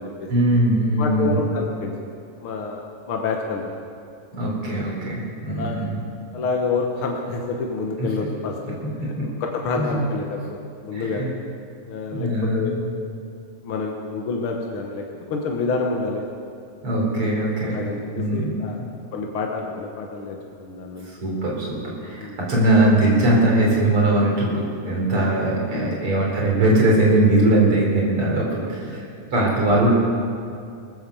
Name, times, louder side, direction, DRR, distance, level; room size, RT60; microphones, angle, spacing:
voice 1, 0.3-1.4 4.3-6.0 8.0-8.1 9.2-9.3 9.8-10.0 10.9-11.3 12.1-12.8 16.8-17.8 18.1-18.9 21.2-29.9, right 1 dB, 40° right, -4 dB, 4.3 m, -21 dB
voice 2, 1.0-1.9 2.4-3.7 5.5-5.8 6.3-8.8 9.0-11.2 11.9-12.7 13.6-15.0 15.3-16.2 17.6-18.8 19.1-21.1 22.2-22.4 25.7-26.0 28.3-28.7, left 4 dB, 60° left, 1 dB, 1.4 m, -28 dB
20.0 x 9.2 x 7.0 m, 2.4 s
omnidirectional pair, 4.0 m